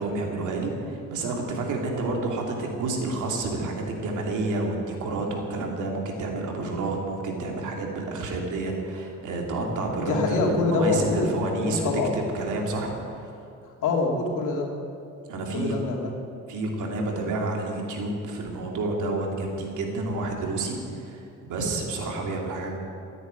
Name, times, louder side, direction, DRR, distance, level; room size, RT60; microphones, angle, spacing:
voice 1, 0.0-13.3 15.3-15.8 16.5-22.8, right 2 dB, 80° right, 0 dB, 3.1 m, -29 dB
voice 2, 9.6-12.2 13.6-14.7 15.5-16.2, left 3 dB, 85° left, 1 dB, 2.8 m, -26 dB
15.0 x 9.4 x 9.2 m, 2.6 s
cardioid pair, 90°, 30 cm